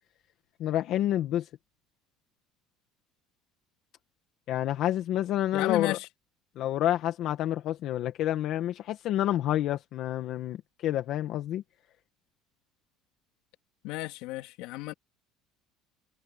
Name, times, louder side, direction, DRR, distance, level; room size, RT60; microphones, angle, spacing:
voice 1, 0.6-1.5 4.5-6.0 6.5-11.6, left 12 dB, 50° left, 1.6 m, -28 dB
voice 2, 5.5-6.1 13.8-14.9, left 19 dB, 75° left, 3.5 m, -32 dB
cardioid pair, 150°, 0 cm